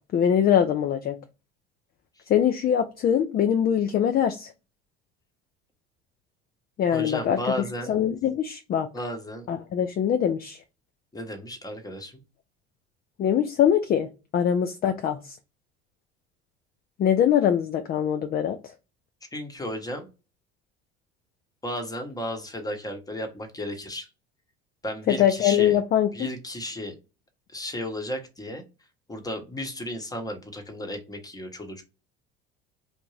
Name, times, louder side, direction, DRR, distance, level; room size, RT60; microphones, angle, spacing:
voice 1, 0.1-1.2 2.3-4.5 6.8-7.4 7.9-8.9 9.5-10.6 13.2-14.1 14.3-15.4 17.0-18.6 25.1-26.3, left 9 dB, 30° left, 7 dB, 0.4 m, -23 dB
voice 2, 6.9-7.9 8.9-9.5 11.1-12.2 19.3-20.1 21.6-24.1 24.8-25.8 26.1-26.9 27.5-28.6 29.1-31.8, left 1 dB, 10° left, 4 dB, 0.9 m, -34 dB
2.6 x 2.1 x 3.1 m, 0.30 s
hypercardioid pair, 70°, 32 cm